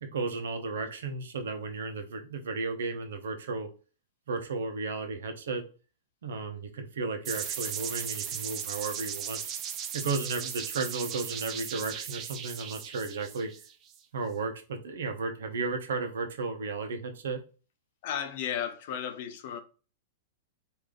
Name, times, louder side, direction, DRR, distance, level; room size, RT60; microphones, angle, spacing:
voice 1, 0.0-3.7 4.3-5.6 6.2-9.4 9.9-13.5 14.1-17.4, right 4 dB, 80° right, 0.8 m, -34 dB
sound 1, 7.3-14.0, right 8 dB, 35° right, 0.5 m, -37 dB
voice 2, 18.0-19.6, left 9 dB, 55° left, 0.6 m, -34 dB
3.2 x 2.7 x 3.7 m
hypercardioid pair, 125°, 0 cm